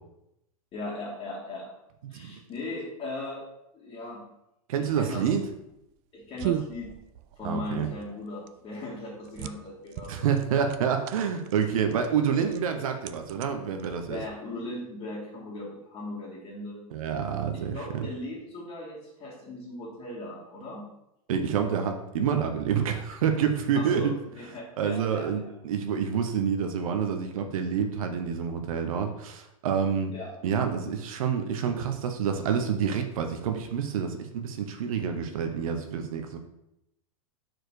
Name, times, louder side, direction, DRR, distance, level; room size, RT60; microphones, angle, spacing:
voice 1, 0.7-1.7 2.1-3.4 3.7-4.2 4.8-5.3 6.1-6.9 7.4-10.3 12.0-12.4 14.1-16.8 17.5-20.8 23.7-25.5 30.1-30.3, left 2 dB, 30° left, -7 dB, 2.0 m, -38 dB
voice 2, 4.7-5.4 7.4-7.9 10.1-14.2 16.9-17.7 21.3-24.1 24.8-30.1 30.4-36.4, right 7 dB, 75° right, 5 dB, 0.8 m, -28 dB
sound 1, 5.6-14.4, right 12 dB, 45° right, 0.4 m, -39 dB
4.7 x 4.5 x 4.7 m, 0.83 s
hypercardioid pair, 130°, 18 cm